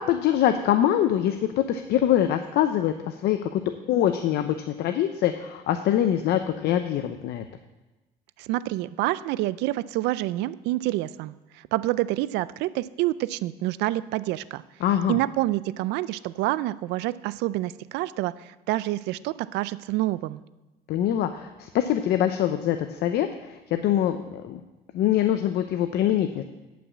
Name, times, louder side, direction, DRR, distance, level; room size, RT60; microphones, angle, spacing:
voice 1, 0.0-7.4 14.8-15.2 20.9-24.6 24.9-26.4, left 11 dB, 75° left, 8 dB, 0.6 m, -24 dB
voice 2, 8.4-14.6 15.1-20.4, right 16 dB, 90° right, 17 dB, 0.4 m, -27 dB
9.5 x 6.0 x 8.2 m, 1.1 s
cardioid pair, 110°, 17 cm